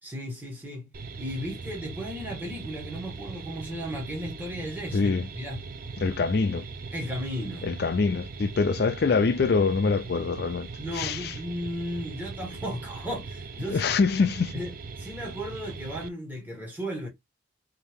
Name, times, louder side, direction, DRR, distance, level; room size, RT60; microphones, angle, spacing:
voice 1, 0.0-0.9 1.2-5.7 6.9-7.7 10.8-13.9 14.5-17.1, equal, 10° right, 1.4 m, -35 dB
sound 1, 0.9-16.1, right 4 dB, 45° right, 0.4 m, -40 dB
voice 2, 4.9-5.3 6.0-6.6 7.6-10.7 10.9-11.3 13.7-14.5, left 4 dB, 55° left, 0.4 m, -24 dB
4.3 x 2.8 x 3.5 m
head